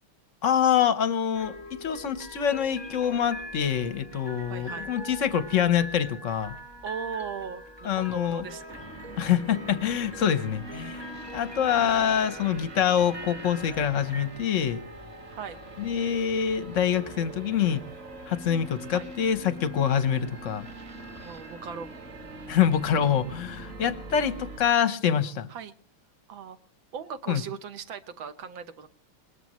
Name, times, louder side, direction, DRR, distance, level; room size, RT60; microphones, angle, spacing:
voice 1, 0.4-6.5 7.8-8.5 9.2-11.0 11.3-14.8 15.8-17.8 18.3-20.6 22.5-25.5 27.3-27.4, left 8 dB, 50° left, 12 dB, 0.9 m, -25 dB
Wien bleibt Wien, 1.3-14.3, equal, 15° right, 1.3 m, -43 dB
voice 2, 4.4-4.9 6.8-8.9 15.3-15.6 16.8-17.6 18.9-19.1 21.2-21.9 25.5-25.7 26.3-26.6 26.9-28.9, right 7 dB, 65° right, 10 dB, 1.7 m, -39 dB
sound 1, 8.7-24.6, right 1 dB, 30° right, 1.6 m, -43 dB
21.0 x 21.0 x 3.1 m, 0.38 s
omnidirectional pair, 2.4 m